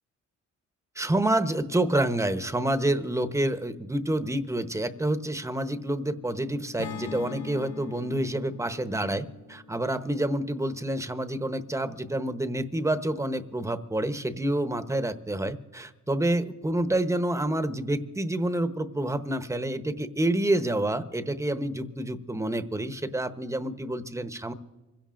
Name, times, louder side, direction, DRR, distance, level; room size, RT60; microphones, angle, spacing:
voice 1, 1.0-24.5, right 1 dB, 10° right, 11 dB, 0.9 m, -28 dB
Acoustic guitar / Strum, 6.8-11.0, left 7 dB, 75° left, 1.3 m, -42 dB
26.0 x 16.5 x 2.5 m, 1.2 s
cardioid pair, 90°, 30 cm